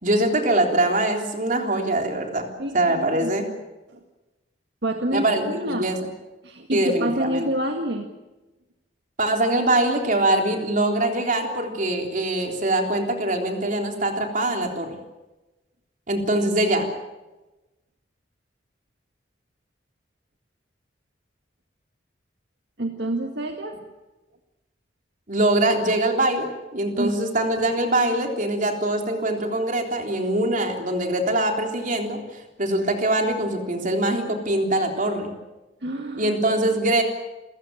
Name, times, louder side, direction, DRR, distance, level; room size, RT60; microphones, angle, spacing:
voice 1, 0.0-2.5 2.7-3.5 5.1-6.0 6.7-7.5 9.2-15.0 16.1-16.9 25.3-35.3 36.2-37.0, right 1 dB, 45° right, 3 dB, 3.6 m, -23 dB
voice 2, 2.6-3.3 3.9-4.0 4.8-5.9 6.4-8.1 22.8-23.8 27.0-27.2 35.8-36.4, right 1 dB, 65° right, 3 dB, 2.0 m, -28 dB
29.5 x 15.0 x 9.1 m, 1.1 s
head